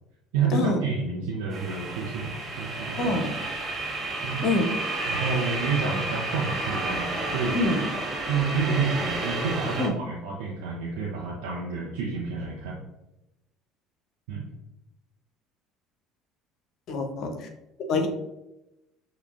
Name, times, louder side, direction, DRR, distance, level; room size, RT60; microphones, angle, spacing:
voice 1, 0.3-3.2 4.2-4.6 5.1-7.6 8.2-12.8 14.3-14.5, right 5 dB, 70° right, -3 dB, 0.5 m, -29 dB
sound 1, 1.5-9.9, right 2 dB, 35° right, 0.8 m, -31 dB
voice 2, 3.0-3.3 4.4-4.7 7.5-7.8 9.8-9.9 16.9-17.5 17.9-18.1, left 2 dB, 50° left, 5 dB, 0.6 m, -25 dB
5.7 x 2.1 x 2.4 m, 0.92 s
hypercardioid pair, 60°, 0 cm